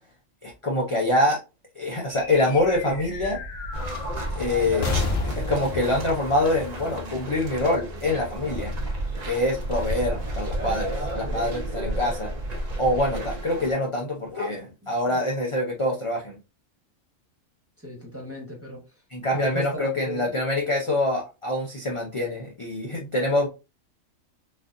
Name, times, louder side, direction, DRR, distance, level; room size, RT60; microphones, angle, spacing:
voice 1, 0.4-1.4 1.8-3.4 4.3-4.9 5.2-8.7 9.2-12.3 12.8-16.4 19.1-23.5, left 1 dB, 35° left, 0.5 m, -25 dB
sound 1, 2.1-7.8, left 3 dB, 70° left, 1.2 m, -32 dB
sound 2, 3.7-13.7, right 1 dB, 40° right, 0.7 m, -32 dB
voice 2, 14.8-15.3 17.8-18.8 19.3-20.3, left 1 dB, 10° right, 1.1 m, -38 dB
4.2 x 2.5 x 2.5 m
omnidirectional pair, 1.4 m